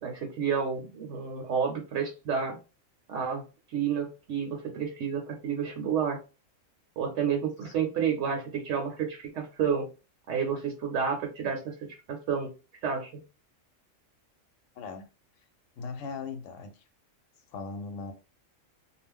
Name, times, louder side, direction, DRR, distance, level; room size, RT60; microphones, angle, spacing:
voice 1, 0.0-2.6 3.1-3.4 3.7-6.2 7.0-9.9 10.3-13.2, right 7 dB, 70° right, 0.9 m, -30 dB
voice 2, 14.8-15.1 15.8-16.8 17.5-18.1, left 4 dB, 75° left, 1.0 m, -38 dB
2.3 x 2.1 x 3.5 m
omnidirectional pair, 1.4 m